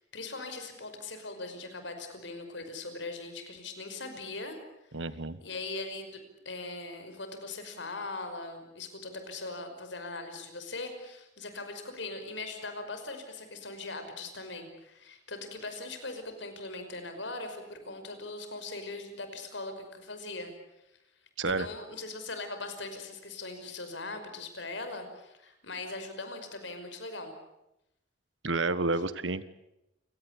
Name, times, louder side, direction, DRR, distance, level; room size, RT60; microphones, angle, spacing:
voice 1, 0.1-4.6 5.4-6.2 6.5-20.5 21.5-27.3, left 3 dB, 75° left, 7 dB, 5.5 m, -40 dB
voice 2, 4.9-5.4 21.4-21.7 28.4-29.4, right 3 dB, 90° right, 14 dB, 1.4 m, -30 dB
30.0 x 17.5 x 8.5 m, 0.87 s
head